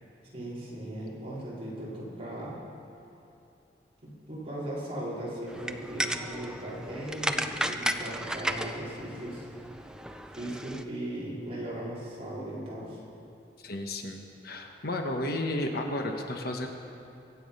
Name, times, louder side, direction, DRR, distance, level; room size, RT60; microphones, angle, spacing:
voice 1, 0.3-2.6 4.0-9.5 10.3-13.0, right 1 dB, 35° right, -8 dB, 4.3 m, -38 dB
sound 1, 5.5-10.8, right 1 dB, 5° right, 0.5 m, -34 dB
voice 2, 13.6-16.7, left 1 dB, 60° left, 3 dB, 1.2 m, -33 dB
23.5 x 8.5 x 5.5 m, 2.6 s
head